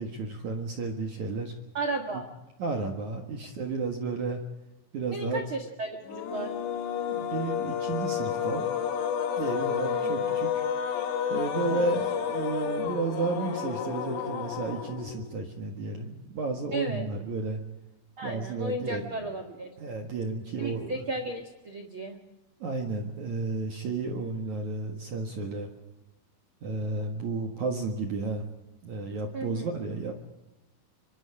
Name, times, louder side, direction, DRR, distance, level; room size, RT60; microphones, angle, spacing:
voice 1, 0.0-1.5 2.6-4.4 4.9-5.5 7.2-8.7 9.4-10.7 11.3-17.6 18.2-19.1 19.8-21.0 22.6-25.7 26.6-28.4 28.8-30.1, right 3 dB, 55° right, 4 dB, 2.2 m, -32 dB
voice 2, 1.7-2.3 5.1-6.5 9.8-10.4 11.7-12.0 16.7-17.1 18.2-19.7 20.6-22.2 29.3-29.7, right 2 dB, 75° right, 4 dB, 1.1 m, -34 dB
sound 1, 6.0-15.4, left 8 dB, 70° left, 4.0 m, -30 dB
25.5 x 24.5 x 4.9 m, 0.99 s
omnidirectional pair, 5.5 m